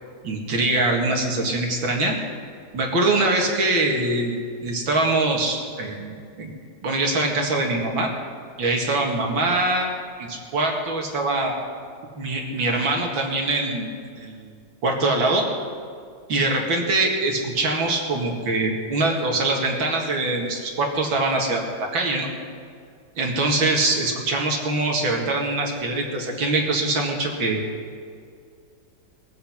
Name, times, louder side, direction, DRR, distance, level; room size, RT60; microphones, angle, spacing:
voice 1, 0.2-2.2 2.7-4.3 4.6-6.5 6.8-8.1 8.6-9.9 10.2-11.5 12.2-14.5 14.8-15.5 16.3-22.3 23.2-27.6, right 2 dB, 70° right, 0 dB, 2.8 m, -23 dB
22.0 x 8.3 x 5.9 m, 2.3 s
omnidirectional pair, 2.2 m